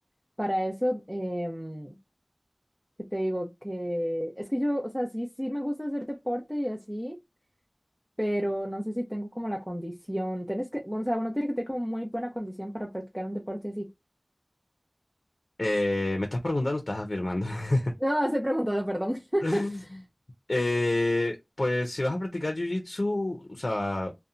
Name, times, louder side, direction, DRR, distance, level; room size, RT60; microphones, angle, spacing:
voice 1, 0.4-2.0 3.1-7.2 8.2-13.9 18.0-19.9, equal, 10° right, 0.5 m, -30 dB
voice 2, 15.6-17.9 19.4-19.8 20.5-24.1, left 2 dB, 75° left, 0.5 m, -28 dB
2.7 x 2.1 x 2.4 m
wide cardioid pair, 40°, 0 cm